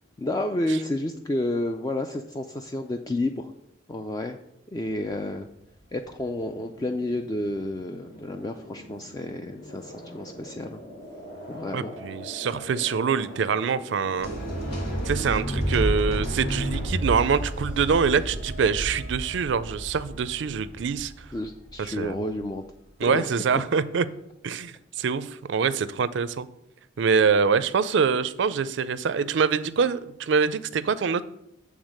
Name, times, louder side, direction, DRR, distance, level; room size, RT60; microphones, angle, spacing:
voice 1, 0.2-3.5 3.9-4.4 4.7-5.5 5.9-10.8 11.5-11.9 21.3-22.6 23.1-23.3, left 1 dB, 20° left, 6 dB, 0.3 m, -30 dB
sound 1, 5.1-18.2, left 1 dB, 60° left, 1.9 m, -45 dB
voice 2, 11.7-14.3 15.0-21.1 21.8-22.2 23.0-24.1 24.4-26.5 27.0-31.3, right 6 dB, 65° right, 15 dB, 0.4 m, -25 dB
sound 2, 14.2-22.2, right 1 dB, 75° left, 3.3 m, -31 dB
8.0 x 3.6 x 6.4 m, 0.80 s
head